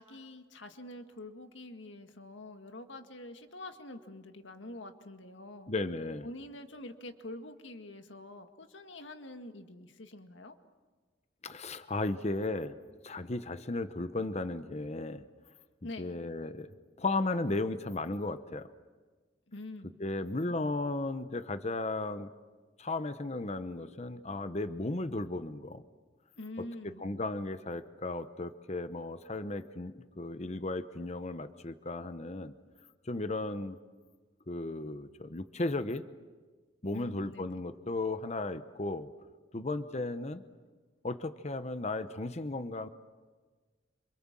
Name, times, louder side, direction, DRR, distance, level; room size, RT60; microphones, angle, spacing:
voice 1, 0.0-5.7 6.2-10.6 15.8-16.2 19.5-20.6 26.4-27.0 36.9-37.7, left 1 dB, 80° left, 6 dB, 1.9 m, -46 dB
voice 2, 5.7-6.3 11.4-12.8 13.0-15.2 16.0-16.7 17.0-18.7 20.0-22.3 22.8-25.8 27.0-32.5 33.1-33.8 34.5-36.0 36.8-39.1 39.5-40.4 41.0-42.9, left 2 dB, 35° left, 11 dB, 0.9 m, -35 dB
28.0 x 26.5 x 7.5 m, 1.4 s
head